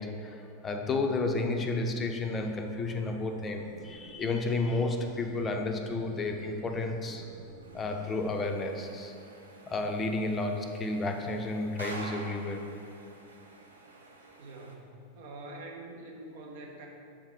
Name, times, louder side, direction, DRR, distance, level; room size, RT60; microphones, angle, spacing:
voice 1, 0.0-7.2 7.7-9.1 9.7-12.7, left 2 dB, 20° left, 4 dB, 0.6 m, -32 dB
sound 1, 2.2-8.5, right 2 dB, 90° left, 0.7 m, -51 dB
sound 2, 7.6-14.7, right 2 dB, 75° right, 0.6 m, -48 dB
voice 2, 14.4-14.9 15.1-16.9, right 2 dB, 50° right, 0 dB, 1.0 m, -45 dB
7.1 x 3.7 x 4.6 m, 2.5 s
figure-of-eight pair, 90°, 0 cm